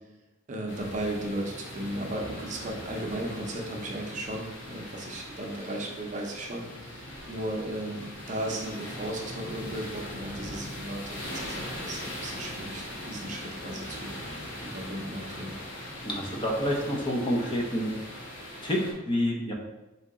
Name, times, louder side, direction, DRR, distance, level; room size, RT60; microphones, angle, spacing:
voice 1, 0.5-14.1 14.6-15.5, right 1 dB, 40° right, 0 dB, 0.6 m, -36 dB
sound 1, 0.7-18.9, left 1 dB, 65° left, 1.0 m, -40 dB
voice 2, 16.0-17.9 18.6-19.5, equal, 25° left, -1 dB, 0.6 m, -28 dB
3.9 x 2.8 x 3.5 m, 1.0 s
head